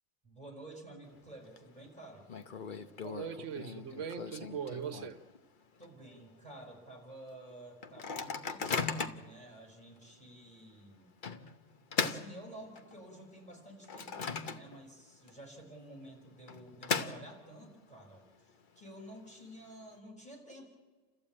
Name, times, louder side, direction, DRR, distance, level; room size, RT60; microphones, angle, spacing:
voice 1, 0.2-2.3 5.8-11.1 12.0-20.7, right 1 dB, 5° left, 5.6 m, -51 dB
Microwave oven, 1.1-1.6 1.9-2.0 2.3-5.4 5.8-5.9 6.2-6.5 7.0-7.1 7.8-9.4 10.0-10.1 11.2-13.1 13.5-15.0 15.3-15.4 16.2-17.7, left 5 dB, 45° left, 1.0 m, -38 dB
voice 2, 3.0-5.2, right 7 dB, 90° right, 1.2 m, -40 dB
29.0 x 14.0 x 8.7 m
omnidirectional pair, 1.2 m